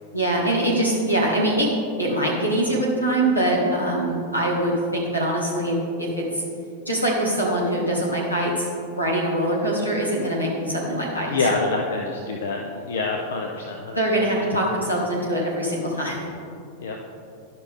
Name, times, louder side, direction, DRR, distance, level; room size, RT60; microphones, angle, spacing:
voice 1, 0.1-1.7 2.0-6.4 6.9-8.7 8.9-11.3 13.9-16.2, right 1 dB, 85° left, -4 dB, 2.0 m, -23 dB
voice 2, 11.3-14.5 16.8-17.0, left 3 dB, 60° left, 1 dB, 0.7 m, -27 dB
12.0 x 5.8 x 3.7 m, 2.4 s
figure-of-eight pair, 90°, 0 cm